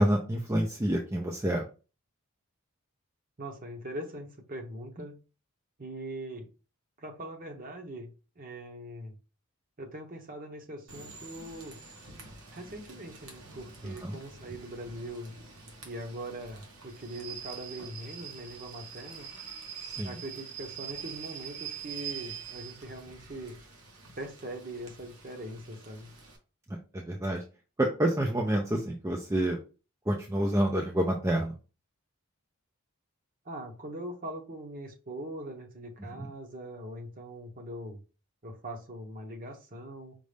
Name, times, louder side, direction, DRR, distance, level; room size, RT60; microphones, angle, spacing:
voice 1, 0.0-1.6 13.8-14.2 19.8-20.2 26.9-27.4 27.8-29.6 30.1-31.6 36.2-36.3, right 1 dB, 15° right, 1 dB, 0.4 m, -28 dB
voice 2, 3.4-5.1 5.8-6.5 7.0-8.1 8.4-9.2 9.8-11.8 12.5-15.3 15.8-19.3 20.0-23.6 24.2-26.1 33.4-38.0 38.4-40.2, right 1 dB, 40° right, 2 dB, 0.9 m, -41 dB
Rain / Train, 10.9-26.4, right 7 dB, 80° right, 1.3 m, -45 dB
5.2 x 2.4 x 3.3 m, 0.34 s
head